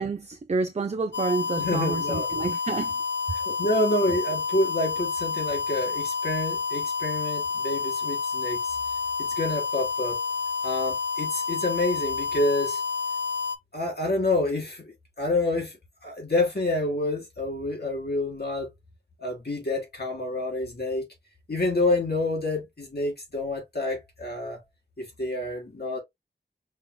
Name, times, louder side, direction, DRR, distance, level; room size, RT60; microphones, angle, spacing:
voice 1, 0.0-2.9, right 4 dB, 40° right, 0.4 m, -29 dB
sound 1, 1.1-13.6, left 5 dB, 85° left, 0.6 m, -29 dB
voice 2, 1.6-2.5 3.3-8.6 9.2-10.2 10.6-12.8 13.7-14.8 15.2-15.7 16.0-18.7 19.2-21.1 21.5-24.6 25.0-26.0, left 2 dB, 65° left, 2.1 m, -28 dB
5.4 x 2.9 x 2.2 m
wide cardioid pair, 65°, 18 cm